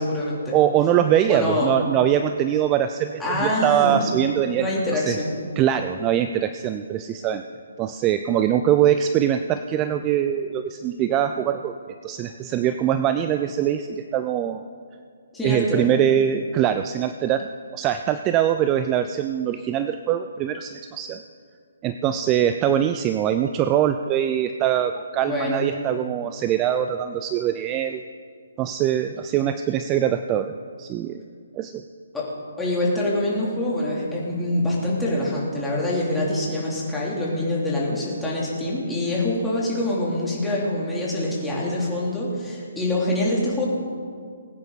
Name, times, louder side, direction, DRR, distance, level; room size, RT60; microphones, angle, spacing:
voice 1, 0.0-0.6 1.3-1.7 3.2-4.2 4.5-5.3 15.3-15.9 25.2-25.6 32.1-32.3 32.6-43.7, left 1 dB, 5° left, -6 dB, 3.4 m, -25 dB
voice 2, 0.5-5.2 5.6-7.4 7.8-11.8 12.0-14.6 15.4-21.2 21.8-28.0 28.6-31.2 31.5-31.8, right 10 dB, 25° right, 9 dB, 0.4 m, -23 dB
20.5 x 9.5 x 4.2 m, 2.1 s
figure-of-eight pair, 140°, 0 cm